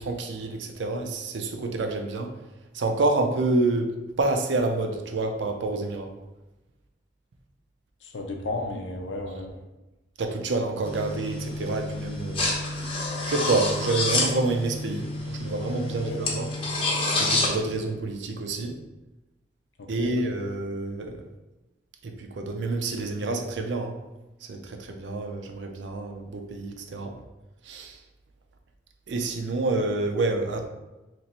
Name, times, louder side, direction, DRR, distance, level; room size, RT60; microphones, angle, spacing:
voice 1, 0.0-2.3 2.7-6.1 10.2-12.5 13.3-16.5 17.2-18.7 19.9-21.2 22.0-24.0 24.5-27.2 27.6-28.0 29.1-30.7, right 2 dB, 85° right, 4 dB, 0.5 m, -28 dB
voice 2, 8.0-9.6 16.1-16.2 19.8-20.1, left 2 dB, 85° left, 3 dB, 0.6 m, -33 dB
sound 1, 10.8-17.5, left 2 dB, 30° left, 0.7 m, -28 dB
3.0 x 2.5 x 4.1 m, 1.0 s
head